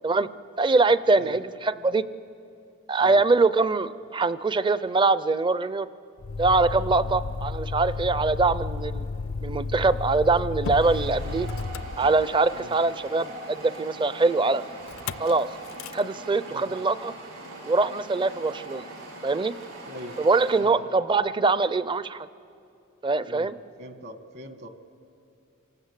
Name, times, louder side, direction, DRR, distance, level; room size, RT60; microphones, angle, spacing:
voice 1, 0.6-2.0 2.9-5.9 6.4-9.1 9.4-11.5 12.0-14.6 15.2-15.5 15.9-17.1 17.7-18.8 19.2-19.5 20.2-22.3 23.0-23.5, right 3 dB, 20° right, 15 dB, 0.5 m, -23 dB
Motor vehicle (road), 6.2-12.6 14.9-15.3 15.6-16.0, left 4 dB, 65° left, 0.5 m, -32 dB
sound 1, 10.8-20.6, right 2 dB, 75° right, 7.2 m, -41 dB
voice 2, 19.9-20.2 20.6-20.8 23.3-23.5 23.8-24.7, right 1 dB, 55° right, 7 dB, 1.5 m, -41 dB
27.5 x 19.0 x 8.2 m, 2.6 s
head